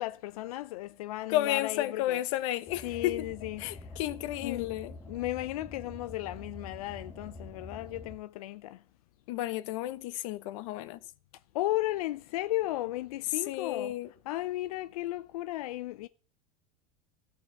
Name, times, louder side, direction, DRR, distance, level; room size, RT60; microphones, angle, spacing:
voice 1, 0.0-2.2 2.8-3.6 4.4-4.7 5.1-8.8 11.5-13.9 14.3-16.1, left 16 dB, 90° left, 0.5 m, -35 dB
voice 2, 1.3-3.3 3.6-5.0 9.3-11.0 13.3-14.1, left 14 dB, 60° left, 0.9 m, -32 dB
Car, 2.7-8.1, left 2 dB, 15° left, 1.8 m, -46 dB
14.5 x 5.5 x 9.0 m
supercardioid pair, 155°, 18 cm